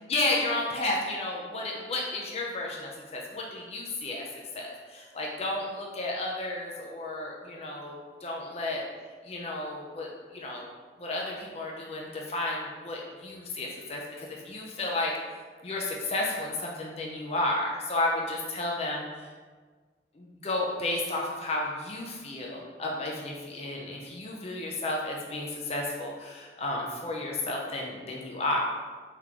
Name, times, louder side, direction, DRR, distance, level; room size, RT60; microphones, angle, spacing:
voice 1, 0.1-4.3 4.5-7.9 8.2-8.8 9.2-10.1 10.3-10.7 11.0-15.1 15.6-19.1 20.2-28.6, left 2 dB, 35° left, -2 dB, 0.5 m, -32 dB
3.7 x 2.9 x 3.6 m, 1.4 s
head